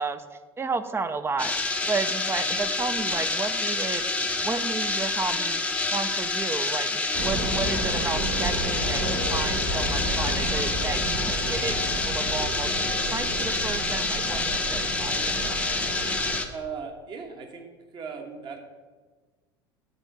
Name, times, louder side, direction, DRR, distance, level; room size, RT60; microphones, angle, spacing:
voice 1, 0.0-1.5 1.8-4.1 4.4-15.6, right 4 dB, 20° right, 11 dB, 0.6 m, -33 dB
sound 1, 1.4-16.5, left 3 dB, 10° left, 0.8 m, -28 dB
sound 2, 7.1-16.4, right 1 dB, 75° right, 1.8 m, -31 dB
voice 2, 16.5-17.7 17.9-18.6, right 6 dB, 35° right, 4 dB, 1.5 m, -37 dB
9.8 x 4.5 x 6.7 m, 1.4 s
figure-of-eight pair, 70°, 13 cm